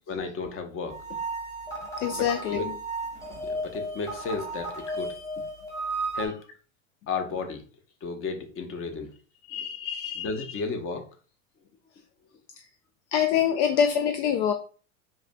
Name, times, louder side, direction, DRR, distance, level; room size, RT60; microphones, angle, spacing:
voice 1, 0.1-1.0 2.1-2.7 3.5-5.1 6.1-6.4 7.1-7.7 8.0-9.1 10.2-11.1, left 4 dB, 30° left, 6 dB, 0.9 m, -33 dB
sound 1, 0.9-6.3, right 2 dB, 10° left, 1.3 m, -34 dB
voice 2, 2.0-2.7 9.5-10.5 13.1-14.5, left 8 dB, 60° left, 7 dB, 0.5 m, -25 dB
4.6 x 2.7 x 2.2 m, 0.38 s
hypercardioid pair, 90°, 40 cm